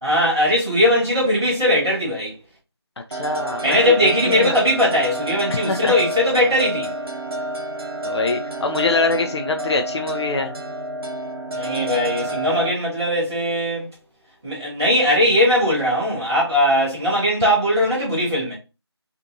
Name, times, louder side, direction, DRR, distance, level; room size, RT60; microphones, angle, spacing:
voice 1, 0.0-2.3 3.6-6.9 11.5-13.9 14.4-18.5, left 1 dB, 5° right, 0.8 m, -19 dB
voice 2, 3.1-4.6 5.5-5.9 8.0-10.5, left 3 dB, 75° left, 0.5 m, -24 dB
sound 1, 3.1-12.7, right 1 dB, 60° right, 0.7 m, -29 dB
2.6 x 2.5 x 2.7 m
figure-of-eight pair, 175°, 14 cm